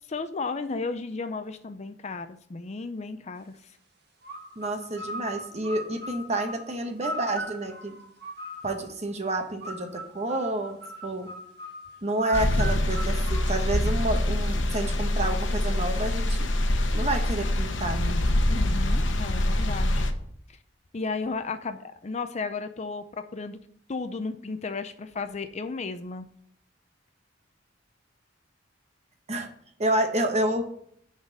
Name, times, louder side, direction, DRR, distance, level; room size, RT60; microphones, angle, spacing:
voice 1, 0.1-3.6 18.5-20.1 20.9-23.6 23.9-26.3, left 4 dB, 35° left, 9 dB, 0.5 m, -34 dB
sound 1, 4.2-8.9 9.6-14.1, right 1 dB, 60° right, 1.4 m, -39 dB
voice 2, 4.6-7.9 8.6-11.3 12.0-16.5 16.9-18.2 29.3-29.5 29.8-30.6, right 1 dB, 35° right, 5 dB, 1.1 m, -29 dB
sound 2, 12.3-20.1, left 1 dB, 90° left, 0.9 m, -25 dB
9.6 x 4.0 x 6.6 m, 0.67 s
head